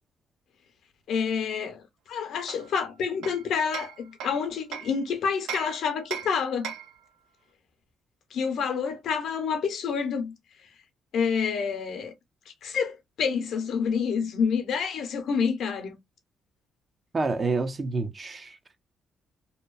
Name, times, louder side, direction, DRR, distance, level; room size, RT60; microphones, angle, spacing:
voice 1, 1.1-6.7 8.3-10.3 11.1-12.1 12.6-16.0, left 6 dB, 70° left, 0.7 m, -28 dB
Hammer, 2.5-5.0 5.5-7.0, right 8 dB, 90° right, 0.5 m, -39 dB
voice 2, 17.1-18.8, right 3 dB, 35° right, 0.5 m, -28 dB
2.8 x 2.2 x 2.3 m
cardioid pair, 90°, 0 cm